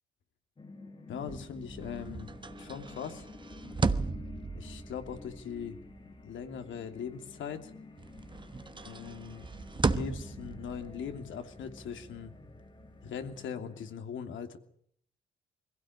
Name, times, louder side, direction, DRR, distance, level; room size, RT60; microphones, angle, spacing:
sound 1, 0.6-13.9, left 3 dB, 25° left, 2.5 m, -51 dB
voice 1, 1.1-2.3 2.6-3.3 4.5-5.8 6.2-7.7 8.8-9.5 9.9-12.3 13.0-14.6, left 7 dB, 75° left, 6 dB, 2.9 m, -40 dB
sound 2, 1.2-7.6 8.0-13.4, right 4 dB, 25° right, 1.2 m, -37 dB
22.0 x 16.5 x 9.7 m, 0.66 s
cardioid pair, 90°, 20 cm